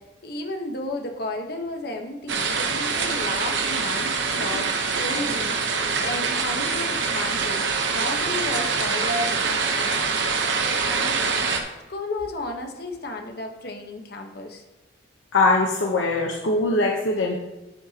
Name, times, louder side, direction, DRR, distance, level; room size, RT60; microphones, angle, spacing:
voice 1, 0.0-4.7 4.9-9.9 10.6-14.6, left 1 dB, 55° left, 3 dB, 1.2 m, -33 dB
sound 1, 2.3-11.6, right 4 dB, 70° right, 1.0 m, -25 dB
voice 2, 15.3-17.4, left 2 dB, 90° left, -2 dB, 1.0 m, -21 dB
9.3 x 8.5 x 2.9 m, 1.1 s
head